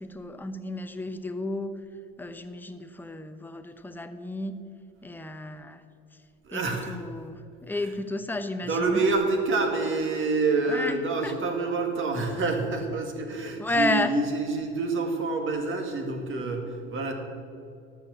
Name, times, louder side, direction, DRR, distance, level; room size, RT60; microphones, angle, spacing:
voice 1, 0.0-1.8 2.2-4.6 5.0-5.8 6.5-9.0 10.7-11.3 13.6-14.2, left 2 dB, 5° left, 9 dB, 0.8 m, -32 dB
voice 2, 6.4-7.0 7.8-7.9 8.6-17.1, right 3 dB, 40° right, 3 dB, 2.1 m, -27 dB
13.0 x 6.5 x 7.1 m, 2.5 s
hypercardioid pair, 75°, 30 cm